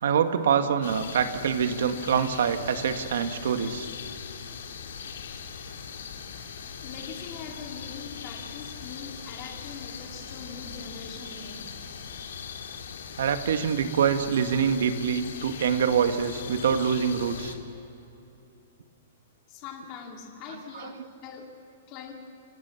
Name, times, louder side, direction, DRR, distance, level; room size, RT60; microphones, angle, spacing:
voice 1, 0.0-3.9 13.2-17.6 20.8-20.9, right 7 dB, 65° right, 8 dB, 1.5 m, -25 dB
sound 1, 0.8-17.6, left 6 dB, 75° left, 2.5 m, -40 dB
voice 2, 6.8-11.6 19.5-21.5 21.9-22.1, left 6 dB, 25° left, 1 dB, 2.4 m, -42 dB
27.5 x 18.0 x 7.1 m, 2.9 s
hypercardioid pair, 180°, 0 cm